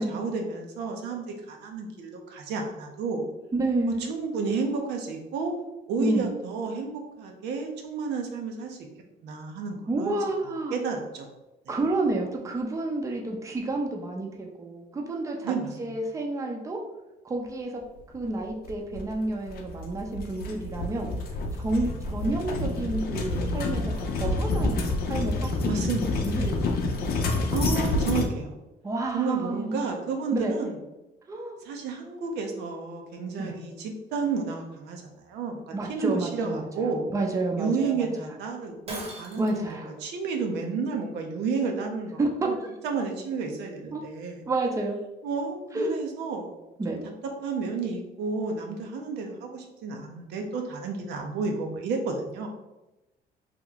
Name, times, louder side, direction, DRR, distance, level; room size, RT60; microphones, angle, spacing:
voice 1, 0.0-3.2 4.1-5.5 5.9-8.8 9.2-10.2 10.7-11.3 15.4-15.9 21.8-21.9 25.6-26.1 27.5-28.6 29.1-30.7 31.6-35.6 35.9-37.1 37.6-42.6 42.8-44.4 45.2-46.5 46.9-47.0 47.4-52.5, right 4 dB, 80° right, 3 dB, 0.6 m, -31 dB
voice 2, 3.5-4.1 6.0-6.3 9.9-10.8 11.7-15.5 15.8-16.8 17.2-17.8 18.1-21.1 21.6-25.5 25.9-27.2 28.8-29.9 30.3-30.6 31.3-31.6 33.4-33.5 35.7-36.9 37.1-38.3 39.4-39.9 42.2-42.7 43.9-44.0 44.5-45.0 45.7-45.9 46.8-47.0, right 2 dB, 20° right, 1 dB, 0.5 m, -30 dB
sound 1, 18.6-28.3, left 2 dB, 65° left, 0.6 m, -28 dB
Shatter, 38.9-39.7, right 2 dB, 35° right, 0.9 m, -39 dB
3.0 x 2.2 x 3.8 m, 0.99 s
cardioid pair, 110°, 17 cm